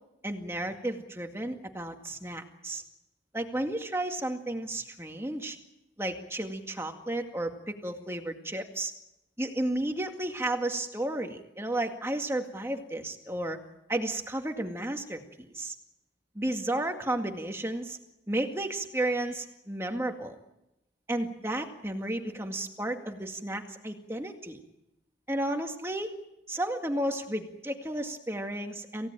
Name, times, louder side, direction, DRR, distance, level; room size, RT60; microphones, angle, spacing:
voice 1, 0.2-2.8 3.3-5.6 6.0-8.9 9.4-13.6 13.9-15.7 16.4-18.0 18.3-20.4 21.1-24.6 25.3-26.2 26.5-29.1, right 1 dB, 15° right, 4 dB, 2.1 m, -33 dB
28.0 x 17.0 x 9.0 m, 0.92 s
head